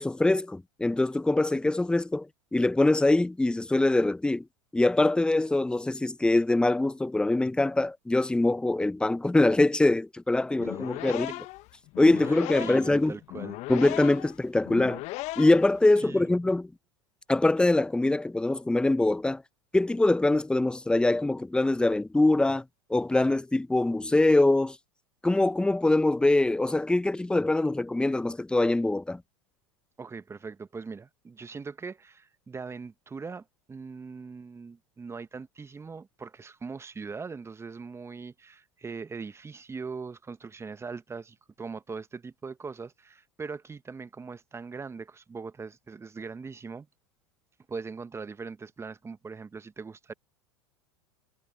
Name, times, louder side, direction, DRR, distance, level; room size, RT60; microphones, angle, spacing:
voice 1, 0.0-4.4 4.7-11.3 12.0-13.2 13.7-15.0 15.4-16.7 17.3-19.4 19.7-22.6 22.9-24.8 25.2-29.2, left 2 dB, 5° left, 1.0 m, -23 dB
sound 1, 10.6-15.8, left 20 dB, 50° left, 1.5 m, -37 dB
voice 2, 12.2-13.6 16.0-16.3 30.0-46.9 47.7-50.1, right 5 dB, 15° right, 1.4 m, -41 dB
hypercardioid pair, 85°, 15 cm